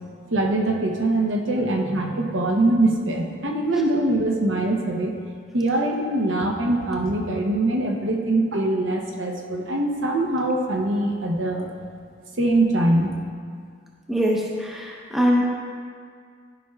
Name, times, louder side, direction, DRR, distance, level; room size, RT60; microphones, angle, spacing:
voice 1, 0.3-5.1 5.5-11.7 12.4-13.1, right 2 dB, 65° right, 1 dB, 0.8 m, -23 dB
voice 2, 14.1-15.4, equal, ahead, -3 dB, 0.7 m, -22 dB
12.5 x 5.7 x 2.3 m, 2.1 s
head